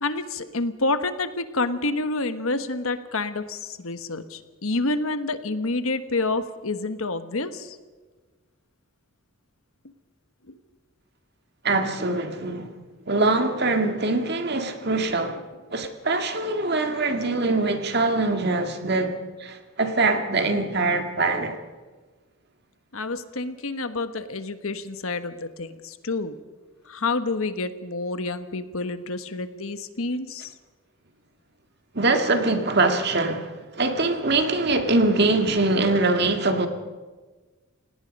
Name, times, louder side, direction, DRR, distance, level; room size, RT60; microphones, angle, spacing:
voice 1, 0.0-7.8 10.5-10.6 14.7-14.9 16.9-17.1 22.9-26.4 26.9-30.5 34.0-34.1, left 3 dB, 75° left, 1.4 m, -28 dB
voice 2, 11.6-12.7 13.1-15.4 15.7-21.6 31.9-36.7, right 2 dB, 50° right, 2.1 m, -23 dB
29.0 x 18.0 x 5.4 m
head